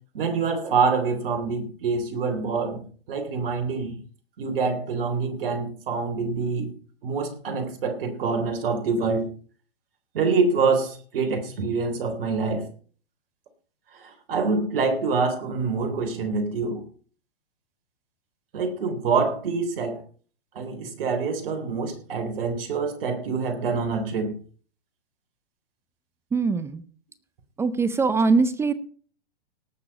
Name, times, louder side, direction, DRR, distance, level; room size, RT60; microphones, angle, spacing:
voice 1, 0.1-2.8 3.1-4.0 4.4-6.7 7.0-9.3 10.1-12.7 13.9-16.8 18.5-20.0 20.6-24.4, right 4 dB, 60° right, 6 dB, 3.7 m, -26 dB
voice 2, 26.3-26.8 27.6-28.7, right 4 dB, 10° right, 15 dB, 0.5 m, -22 dB
18.0 x 6.8 x 5.3 m, 0.43 s
hypercardioid pair, 130°, 31 cm